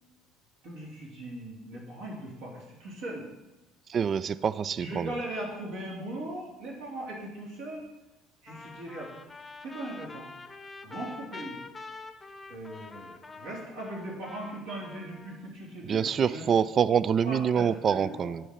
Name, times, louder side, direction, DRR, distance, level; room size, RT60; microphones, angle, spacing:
voice 1, 0.6-3.3 4.8-7.8 8.4-9.1 9.6-10.3 10.8-11.6 12.5-16.5 17.2-18.3, right 1 dB, 65° right, -4 dB, 3.1 m, -39 dB
voice 2, 3.9-5.1 15.9-18.4, right 7 dB, 40° right, 17 dB, 0.3 m, -26 dB
Trumpet, 8.5-15.5, left 4 dB, 20° left, 0.8 m, -46 dB
9.9 x 4.5 x 5.8 m, 1.0 s
figure-of-eight pair, 60°, 0 cm